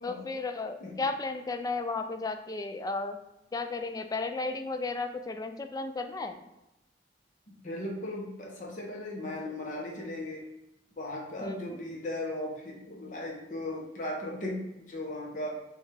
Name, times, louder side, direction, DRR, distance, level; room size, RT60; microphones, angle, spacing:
voice 1, 0.0-3.2 3.5-6.4 11.4-11.8, left 3 dB, 20° left, 7 dB, 0.3 m, -34 dB
voice 2, 7.5-10.4 11.0-15.5, left 1 dB, 45° left, -2 dB, 0.8 m, -37 dB
5.4 x 2.3 x 3.2 m, 0.91 s
head